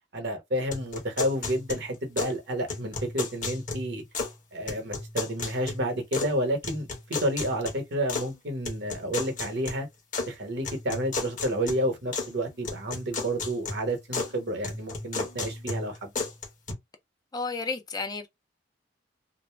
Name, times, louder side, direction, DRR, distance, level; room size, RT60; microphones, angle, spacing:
voice 1, 0.1-4.0 4.5-9.9 10.3-16.1, right 1 dB, 65° right, 1.0 m, -30 dB
sound 1, 0.7-2.4 2.7-4.4 4.7-6.4 6.6-8.3 8.6-10.3 10.6-12.3 12.6-14.3 14.6-16.7, left 3 dB, 45° left, 1.0 m, -34 dB
voice 2, 17.3-18.3, left 4 dB, 20° left, 0.4 m, -32 dB
2.6 x 2.0 x 3.2 m
head